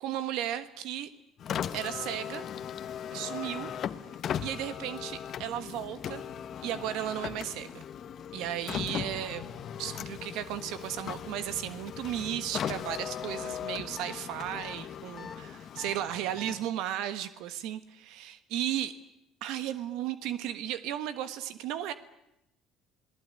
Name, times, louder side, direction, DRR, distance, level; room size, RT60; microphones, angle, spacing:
voice 1, 0.0-1.1 1.7-2.4 3.1-3.7 4.4-6.3 6.6-7.8 8.3-9.5 9.8-19.0 19.4-21.9, right 11 dB, 80° right, 12 dB, 1.4 m, -35 dB
Car, 1.4-16.8, left 9 dB, 45° left, 1.2 m, -38 dB
sound 1, 14.0-14.2 14.6-14.7 15.2-15.4 15.8-15.9 16.4-16.5, left 5 dB, 30° left, 1.3 m, -44 dB
28.0 x 19.0 x 9.7 m, 0.84 s
cardioid pair, 130°, 0 cm